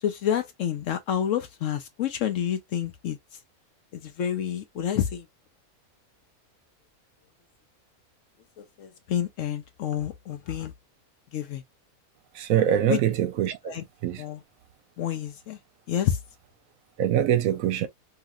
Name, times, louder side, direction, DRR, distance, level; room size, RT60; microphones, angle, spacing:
voice 1, 0.0-3.2 3.9-5.2 8.6-10.7 11.3-11.6 12.9-13.0 13.7-13.8 14.2-14.4 15.0-15.6 15.9-16.2, left 10 dB, 70° left, 0.8 m, -29 dB
voice 2, 12.3-14.2 17.0-17.9, right 10 dB, 70° right, 0.9 m, -24 dB
2.9 x 2.8 x 2.2 m
omnidirectional pair, 1.6 m